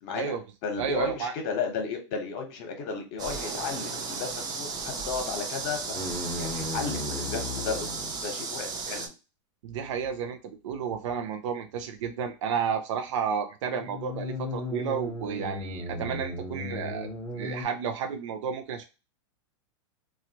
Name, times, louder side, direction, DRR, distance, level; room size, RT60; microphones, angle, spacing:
voice 1, 0.0-0.3 0.6-6.0 6.3-7.9 8.2-9.1, left 5 dB, 50° left, 4 dB, 1.0 m, -34 dB
voice 2, 0.8-1.3 9.6-17.1 17.3-18.8, right 6 dB, 70° right, 6 dB, 0.5 m, -32 dB
sound 1, 3.2-9.1, right 4 dB, 25° right, 0.5 m, -35 dB
sound 2, 5.9-8.3 13.7-17.7, left 2 dB, 10° left, 0.9 m, -35 dB
2.8 x 2.4 x 2.8 m, 0.30 s
supercardioid pair, 135°, 16 cm